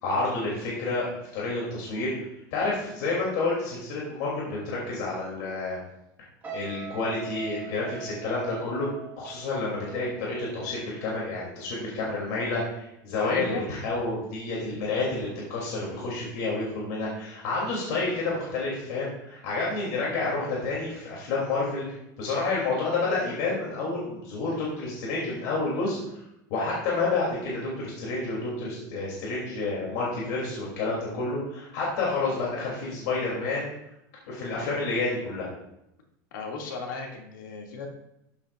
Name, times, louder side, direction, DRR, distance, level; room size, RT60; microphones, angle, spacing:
voice 1, 0.0-2.1 2.5-5.8 6.5-8.9 9.2-21.9 22.2-26.0 26.5-33.7 34.3-35.5, left 3 dB, 55° left, -5 dB, 3.3 m, -29 dB
sound 1, 6.4-11.7 12.0-12.4, right 10 dB, 15° right, 1.7 m, -42 dB
voice 2, 13.2-13.6 36.3-37.9, left 3 dB, 90° left, 0 dB, 2.6 m, -35 dB
13.0 x 8.5 x 2.6 m, 0.83 s
supercardioid pair, 165°, 10 cm